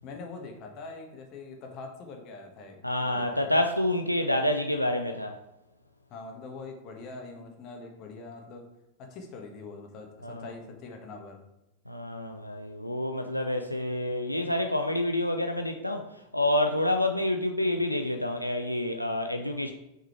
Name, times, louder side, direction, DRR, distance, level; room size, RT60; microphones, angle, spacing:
voice 1, 0.0-3.5 6.1-8.7 9.0-11.4, left 3 dB, 40° left, 1.5 m, -43 dB
voice 2, 2.8-5.4 10.2-10.5 11.9-16.1 16.3-19.7, left 1 dB, 90° left, 0.5 m, -28 dB
6.0 x 5.5 x 4.6 m
figure-of-eight pair, 90°, 0 cm